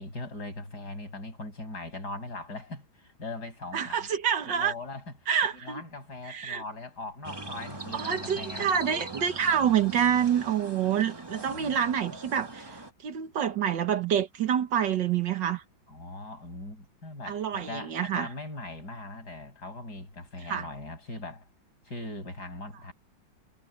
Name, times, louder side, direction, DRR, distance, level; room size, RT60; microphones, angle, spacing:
voice 1, 0.0-4.1 4.4-8.7 11.5-12.0 15.9-21.5 21.8-22.9, left 2 dB, 55° left, 8.7 m, -40 dB
voice 2, 3.7-4.7 5.3-5.8 6.3-6.6 7.9-12.8 13.0-15.6 17.3-18.3 20.5-20.7, right 8 dB, 65° right, 1.8 m, -27 dB
sound 1, 7.2-12.9, right 2 dB, 15° right, 1.5 m, -41 dB
omnidirectional pair, 2.1 m